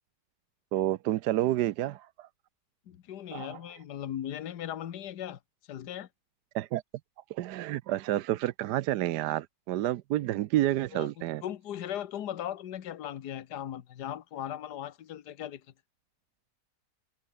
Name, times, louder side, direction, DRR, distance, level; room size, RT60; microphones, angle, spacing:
voice 1, 0.7-2.3 3.3-3.6 6.5-6.8 7.3-11.4, right 14 dB, 75° right, 1.2 m, -29 dB
voice 2, 2.9-5.4 5.7-6.1 10.9-15.6, left 11 dB, 65° left, 1.6 m, -38 dB
omnidirectional pair, 1.9 m